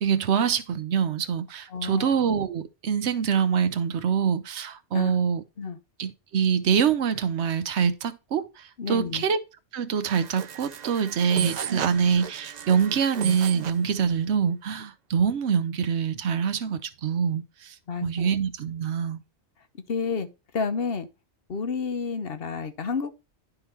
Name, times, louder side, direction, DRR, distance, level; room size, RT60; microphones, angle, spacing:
voice 1, 0.0-5.4 6.0-9.4 9.7-17.8 18.0-19.2, right 7 dB, 75° right, 1.0 m, -25 dB
voice 2, 1.7-2.1 4.9-5.1 5.6-5.8 8.8-9.3 17.9-18.3 19.9-20.3 20.5-21.1 21.5-23.2, left 5 dB, 60° left, 1.1 m, -30 dB
sound 1, 10.0-13.9, right 8 dB, 50° right, 0.5 m, -35 dB
11.0 x 3.9 x 4.4 m
omnidirectional pair, 1.2 m